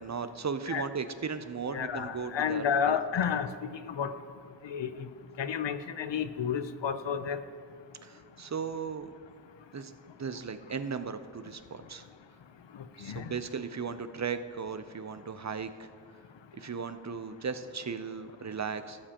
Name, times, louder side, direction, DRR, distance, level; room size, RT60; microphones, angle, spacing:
voice 1, 0.0-3.0 8.0-9.1 9.7-9.9 10.2-12.0 13.0-15.9 16.5-19.0, right 5 dB, 40° right, 11 dB, 0.5 m, -36 dB
voice 2, 1.7-3.5 3.8-4.1 4.6-5.1 5.4-7.4 13.0-13.3, left 7 dB, 75° left, 11 dB, 0.6 m, -31 dB
17.5 x 7.4 x 2.9 m, 2.2 s
wide cardioid pair, 80°, 44 cm